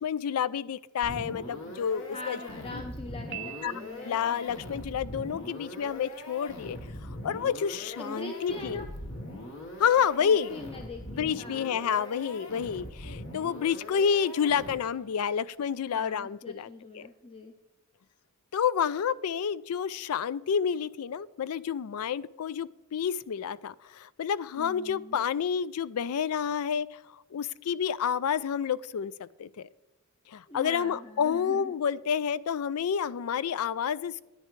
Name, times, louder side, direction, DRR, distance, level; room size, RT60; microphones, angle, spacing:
voice 1, 0.0-2.4 2.7-2.8 3.6-3.7 4.0-6.8 7.2-8.9 9.8-10.5 11.2-16.7 17.0-17.1 18.5-27.0 27.3-29.7 30.3-34.2, left 7 dB, 90° left, 19 dB, 0.4 m, -29 dB
sound 1, 1.0-15.1, left 1 dB, 60° left, 1.5 m, -42 dB
voice 2, 2.1-4.5 8.0-8.9 10.2-11.7 15.9-17.5 24.5-25.2 30.5-31.7, left 2 dB, 25° left, 4 dB, 0.6 m, -42 dB
Piano, 3.3-4.4, right 17 dB, 55° right, 0.5 m, -42 dB
10.0 x 9.9 x 3.2 m, 1.0 s
head